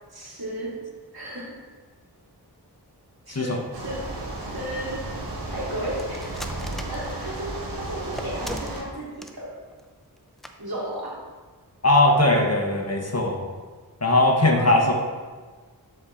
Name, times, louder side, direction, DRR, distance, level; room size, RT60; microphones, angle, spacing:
voice 1, 0.1-0.8 1.1-1.6 3.3-4.1 4.5-5.1 5.5-6.5 6.7-9.5 10.6-11.2 14.4-14.9, right 1 dB, 60° right, -6 dB, 2.6 m, -34 dB
voice 2, 3.3-3.6 11.8-13.4 14.0-14.9, left 1 dB, 40° left, 0 dB, 1.1 m, -19 dB
sound 1, 3.7-8.8, right 1 dB, 85° right, 1.6 m, -34 dB
sound 2, 6.0-7.5 8.1-9.4 9.7-9.8 10.2-10.3 10.4-10.5 10.9-11.1, equal, ahead, 0.6 m, -38 dB
12.0 x 4.4 x 3.7 m, 1.4 s
wide cardioid pair, 55°, 41 cm